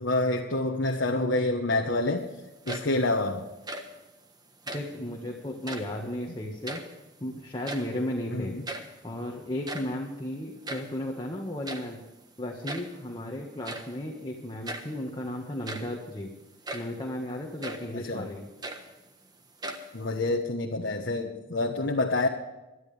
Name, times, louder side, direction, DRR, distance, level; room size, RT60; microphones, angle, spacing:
voice 1, 0.0-2.3 2.7-3.5 8.3-8.6 17.9-18.3 19.9-22.3, left 2 dB, 65° left, 1.3 m, -27 dB
sound 1, 2.5-3.1 3.5-4.0 4.6-5.0 5.5-6.0 6.4-7.2 7.5-8.1 8.4-8.5 8.6-9.0 9.5-11.0 11.6-12.0 12.6-13.0 13.6-14.0 14.6-15.0 15.5-16.0 16.6-17.0 17.6-17.9 18.4-19.2 19.6-20.2, right 1 dB, 20° right, 1.4 m, -39 dB
voice 2, 4.7-6.8 7.2-8.5 9.0-12.0 12.4-16.3 16.7-18.4, left 1 dB, 25° left, 1.7 m, -34 dB
22.0 x 13.0 x 3.5 m
head